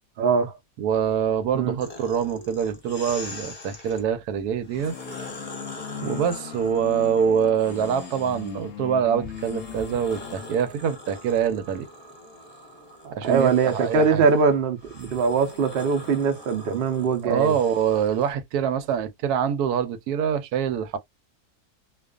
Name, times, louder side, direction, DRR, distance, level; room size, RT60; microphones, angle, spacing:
voice 1, 0.2-0.5 1.5-1.8 13.0-17.6, right 5 dB, 55° right, 0.7 m, -22 dB
voice 2, 0.8-4.9 6.0-11.9 13.1-14.2 17.2-21.0, right 8 dB, 85° right, 1.1 m, -25 dB
sound 1, 1.8-4.0 4.6-8.7 9.2-18.3, left 2 dB, 30° left, 0.9 m, -43 dB
sound 2, 4.7-10.6, left 9 dB, 70° left, 0.9 m, -38 dB
2.4 x 2.4 x 2.2 m
omnidirectional pair, 1.6 m